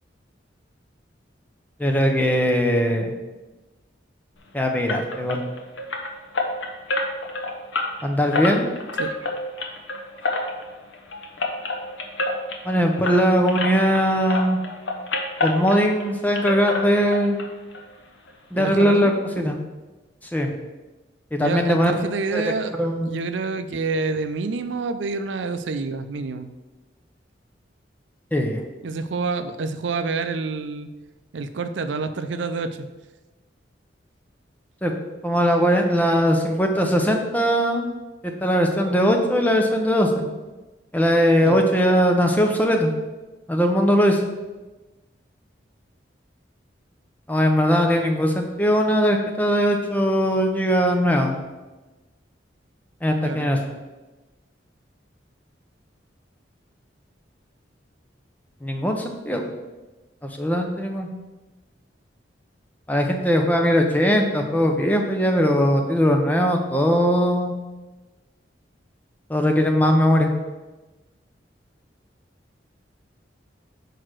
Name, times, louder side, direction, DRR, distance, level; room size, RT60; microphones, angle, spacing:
voice 1, 1.8-3.1 4.5-5.4 8.0-8.7 12.6-14.6 15.4-17.4 18.5-19.6 20.3-20.5 21.3-21.9 22.3-22.4 22.8-23.2 28.3-28.6 34.8-34.9 35.2-37.9 38.2-40.3 40.9-42.9 43.5-44.2 47.3-51.4 53.0-53.6 58.6-59.4 60.4-61.1 62.9-67.5 69.3-70.3, equal, 10° left, 3 dB, 0.7 m, -20 dB
sound 1, 4.9-14.0 14.3-16.1 16.3-17.5 17.7-17.8 18.3-18.4 18.7-18.8, left 2 dB, 85° left, 1.0 m, -28 dB
voice 2, 18.5-19.1 21.4-22.8 23.1-26.5 28.8-30.9 31.3-32.9 41.4-41.7 53.2-53.5, right 4 dB, 80° right, 10 dB, 0.5 m, -28 dB
4.9 x 4.6 x 6.2 m, 1.2 s
head